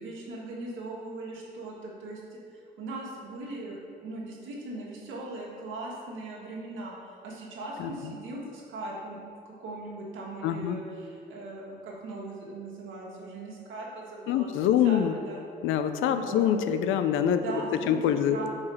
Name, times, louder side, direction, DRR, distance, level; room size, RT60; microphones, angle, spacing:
voice 1, 0.0-2.4 2.8-9.2 9.4-15.0 15.3-15.4 16.1-16.4 17.4-18.5, right 2 dB, 80° right, -4 dB, 1.5 m, -39 dB
voice 2, 10.4-10.8 14.3-15.1 15.6-17.4 17.9-18.4, left 9 dB, 90° left, 9 dB, 0.5 m, -25 dB
4.8 x 4.8 x 5.5 m, 2.4 s
cardioid pair, 90°, 20 cm